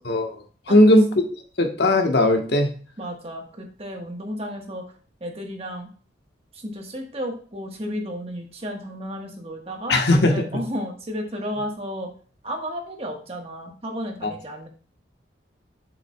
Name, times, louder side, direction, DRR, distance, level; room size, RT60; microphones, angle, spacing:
voice 1, 0.0-1.1 1.6-2.7 9.9-10.6 14.2-14.3, left 1 dB, 65° left, 4 dB, 1.2 m, -18 dB
voice 2, 0.7-1.0 3.0-4.8 5.2-5.9 6.5-12.1 12.4-14.7, equal, 35° right, 2 dB, 1.3 m, -33 dB
7.6 x 7.5 x 2.3 m, 0.41 s
head